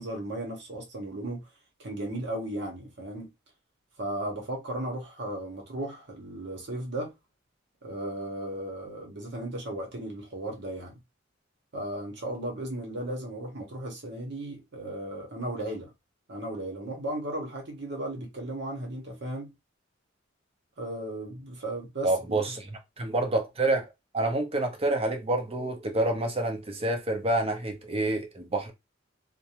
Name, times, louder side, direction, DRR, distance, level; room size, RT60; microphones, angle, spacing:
voice 1, 0.0-1.5 1.8-3.3 4.0-7.1 7.8-11.0 11.7-15.9 16.3-19.5 20.8-22.4, right 1 dB, 60° right, 1.0 m, -35 dB
voice 2, 22.0-23.9 24.1-28.7, right 2 dB, 30° right, 0.7 m, -28 dB
2.6 x 2.1 x 2.9 m
head